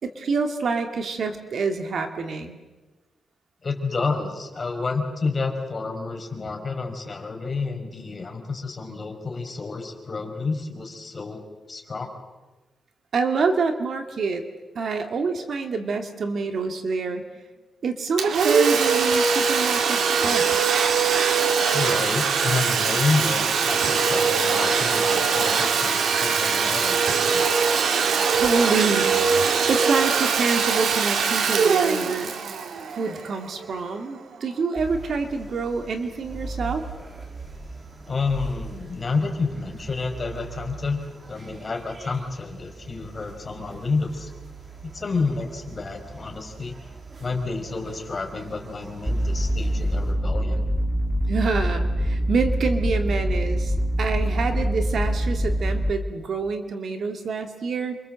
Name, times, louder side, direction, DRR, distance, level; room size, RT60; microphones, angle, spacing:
voice 1, 0.0-2.6 13.1-14.4 14.7-17.2 17.8-20.5 28.3-32.3 32.9-36.8 51.3-58.0, right 4 dB, 55° right, 6 dB, 2.4 m, -27 dB
voice 2, 3.6-11.4 11.7-12.1 21.7-27.5 38.1-44.3 44.8-46.8 47.2-50.6, left 4 dB, 30° left, 2 dB, 4.9 m, -29 dB
Domestic sounds home sounds, 18.2-33.6, right 5 dB, 80° right, 2.4 m, -22 dB
sound 1, 34.8-50.1, right 3 dB, 30° right, 3.3 m, -41 dB
sound 2, 49.1-55.9, equal, 5° right, 1.9 m, -24 dB
28.0 x 25.0 x 7.7 m, 1.2 s
wide cardioid pair, 140°, 0 cm